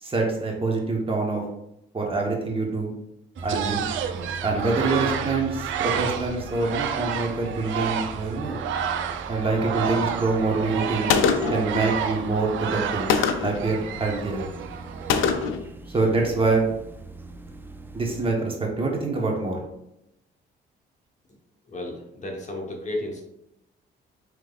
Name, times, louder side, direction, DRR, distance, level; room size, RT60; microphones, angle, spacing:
voice 1, 0.0-1.4 1.9-2.9 3.4-3.9 4.4-8.6 9.3-11.1 11.5-13.1 13.4-14.5 15.9-16.7 17.9-19.6, right 3 dB, 25° right, -1 dB, 1.0 m, -25 dB
sound 1, 3.4-18.3, right 3 dB, 10° right, 0.3 m, -41 dB
sound 2, 3.4-15.5, right 8 dB, 75° right, 0.4 m, -30 dB
Gunshot gunfire, 11.1-11.7 13.1-13.6 15.1-15.7, left 6 dB, 85° left, 0.4 m, -22 dB
voice 2, 21.7-23.2, left 1 dB, 35° left, 1 dB, 0.9 m, -33 dB
4.9 x 3.1 x 2.3 m, 0.84 s
cardioid pair, 90°, 20 cm